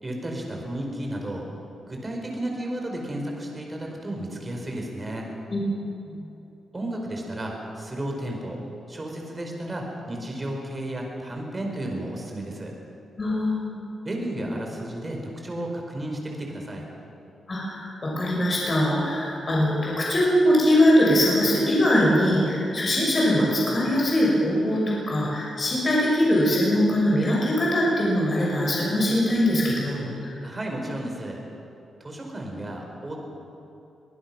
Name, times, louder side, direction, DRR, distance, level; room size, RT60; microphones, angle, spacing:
voice 1, 0.0-1.5 1.9-5.3 6.7-8.6 8.9-12.7 14.0-16.9 30.4-31.4 32.0-33.2, right 1 dB, 20° right, 1 dB, 4.7 m, -33 dB
voice 2, 13.2-13.8 17.5-30.3, equal, 30° left, -4 dB, 6.3 m, -22 dB
24.0 x 20.0 x 6.2 m, 2.8 s
cardioid pair, 120°, 0 cm